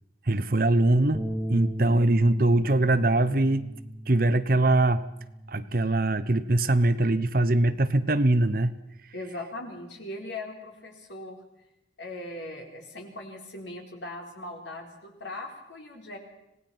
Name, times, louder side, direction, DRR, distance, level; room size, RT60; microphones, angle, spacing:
voice 1, 0.3-1.2 1.5-3.7 4.1-5.0 5.5-8.7, right 2 dB, 50° right, 13 dB, 1.0 m, -22 dB
Bass guitar, 1.1-7.4, right 1 dB, ahead, 1.6 m, -38 dB
voice 2, 9.1-11.4 12.0-16.2, left 2 dB, 80° left, 2 dB, 4.2 m, -39 dB
26.0 x 18.0 x 5.9 m, 0.85 s
head